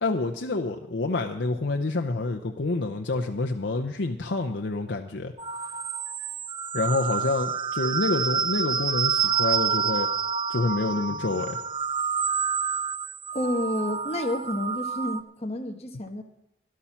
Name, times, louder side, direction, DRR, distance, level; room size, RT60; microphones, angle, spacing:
voice 1, 0.0-5.3 6.7-10.1 10.5-11.6, left 3 dB, 85° left, 4 dB, 0.7 m, -27 dB
sound 1, 5.4-15.2, right 6 dB, 30° right, 0.4 m, -28 dB
voice 2, 13.3-16.2, left 1 dB, 35° left, 4 dB, 1.2 m, -30 dB
13.0 x 11.5 x 5.9 m, 0.83 s
head